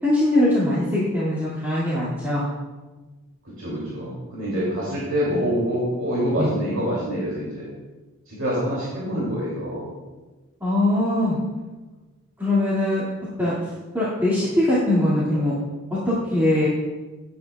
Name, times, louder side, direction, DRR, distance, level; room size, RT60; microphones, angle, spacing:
voice 1, 0.0-2.5 6.4-6.6 10.6-11.4 12.4-13.0 13.4-13.5 13.9-15.6 16.1-16.7, left 1 dB, 10° right, -11 dB, 2.2 m, -21 dB
voice 2, 3.6-7.7 8.3-9.9, equal, 55° right, -6 dB, 2.8 m, -26 dB
16.5 x 8.5 x 2.4 m, 1.2 s
head